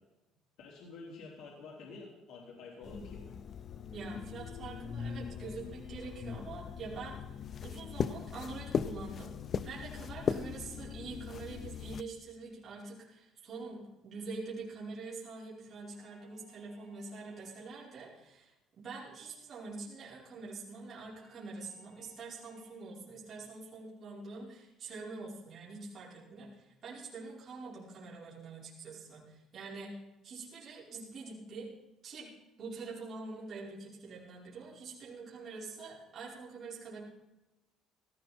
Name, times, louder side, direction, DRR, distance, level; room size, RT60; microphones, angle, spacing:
voice 1, 0.6-3.2, left 3 dB, 60° left, -4 dB, 3.8 m, -48 dB
sound 1, 2.8-12.0, left 7 dB, 30° left, 0.5 m, -39 dB
voice 2, 3.9-7.2 7.6-9.3 9.6-30.0 30.2-31.7 32.0-32.3 32.6-37.0, right 3 dB, 30° right, -8 dB, 5.2 m, -45 dB
sound 2, 15.9-17.8 21.1-22.9, right 5 dB, 10° right, 4.6 m, -66 dB
17.5 x 14.5 x 4.4 m, 1.0 s
cardioid pair, 170°, 0 cm